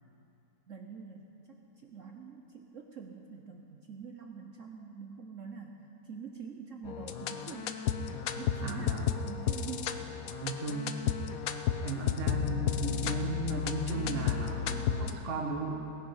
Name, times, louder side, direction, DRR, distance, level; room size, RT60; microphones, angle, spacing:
voice 1, 0.7-7.8 8.3-10.0, right 6 dB, 65° right, 3 dB, 0.7 m, -45 dB
sound 1, 6.8-15.1, left 8 dB, 80° left, 0.7 m, -33 dB
voice 2, 8.6-9.1 10.4-11.0 11.8-15.7, right 3 dB, 30° right, 0 dB, 1.4 m, -36 dB
18.0 x 9.7 x 5.7 m, 2.9 s
omnidirectional pair, 2.2 m